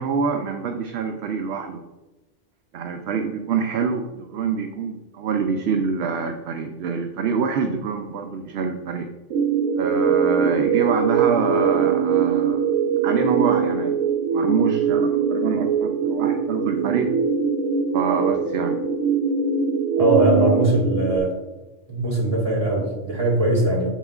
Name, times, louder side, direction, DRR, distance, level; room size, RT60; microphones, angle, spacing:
voice 1, 0.0-1.8 2.7-9.1 9.8-12.7 13.0-14.0 14.3-17.1 17.9-18.8, right 5 dB, 65° right, 5 dB, 0.8 m, -26 dB
sound 1, 9.3-21.2, right 6 dB, 85° right, 1.0 m, -22 dB
voice 2, 20.0-21.4 21.9-23.9, right 1 dB, 30° right, -2 dB, 1.8 m, -21 dB
7.3 x 7.2 x 2.4 m, 1.1 s
omnidirectional pair, 1.2 m